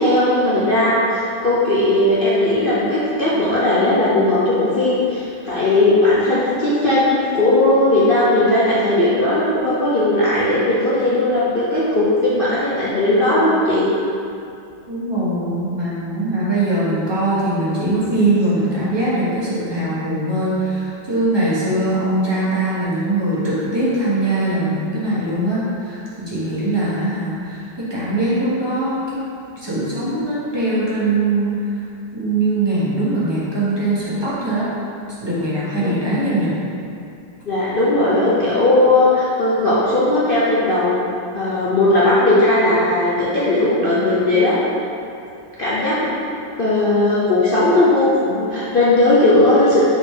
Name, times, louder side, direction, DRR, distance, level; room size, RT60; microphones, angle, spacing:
voice 1, 0.0-13.9 35.8-36.1 37.5-40.9 41.3-44.6 45.6-46.1 46.5-49.8, left 2 dB, 75° left, -9 dB, 0.5 m, -17 dB
voice 2, 14.9-29.0 29.5-31.8 32.1-34.7 35.2-36.5, right 2 dB, 15° right, -9 dB, 1.1 m, -21 dB
6.7 x 4.0 x 3.7 m, 2.5 s
omnidirectional pair, 2.1 m